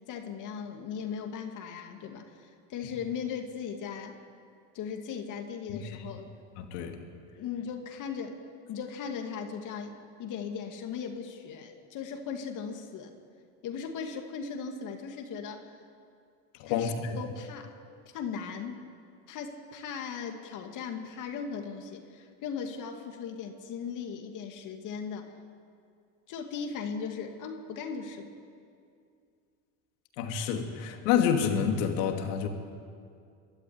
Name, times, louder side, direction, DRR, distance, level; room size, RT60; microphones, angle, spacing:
voice 1, 0.1-4.2 4.7-6.3 7.4-13.1 13.6-15.8 16.6-17.8 18.1-18.8 19.3-25.3 26.3-28.3, left 6 dB, 55° left, 4 dB, 2.4 m, -38 dB
voice 2, 6.6-7.0 16.6-17.2 30.2-32.5, left 7 dB, 80° left, 4 dB, 2.7 m, -28 dB
23.5 x 13.0 x 9.7 m, 2.3 s
supercardioid pair, 100°, 36 cm